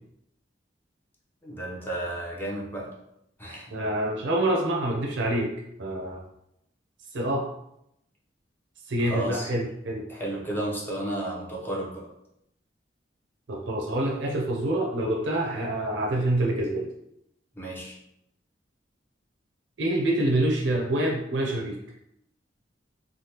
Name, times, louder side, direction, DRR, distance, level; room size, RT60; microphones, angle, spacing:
voice 1, 1.4-2.9 3.4-3.8 9.0-9.5 10.1-12.1 17.5-18.0, right 1 dB, 10° left, -4 dB, 0.7 m, -33 dB
voice 2, 3.7-5.5 5.8-6.2 7.1-7.5 8.9-10.1 13.5-16.9 19.8-21.8, right 1 dB, 75° right, -1 dB, 0.5 m, -26 dB
3.2 x 2.2 x 2.8 m, 0.80 s
head